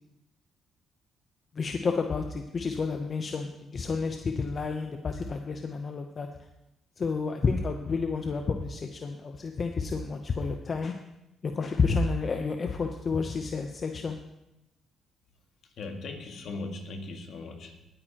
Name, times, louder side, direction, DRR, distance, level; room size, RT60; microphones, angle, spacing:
voice 1, 1.5-6.3 7.0-11.0 11.4-14.2, left 4 dB, 40° left, 5 dB, 0.8 m, -30 dB
voice 2, 15.6-17.9, left 3 dB, 65° left, 4 dB, 1.7 m, -39 dB
19.0 x 8.9 x 3.0 m, 0.90 s
cardioid pair, 90°, 0 cm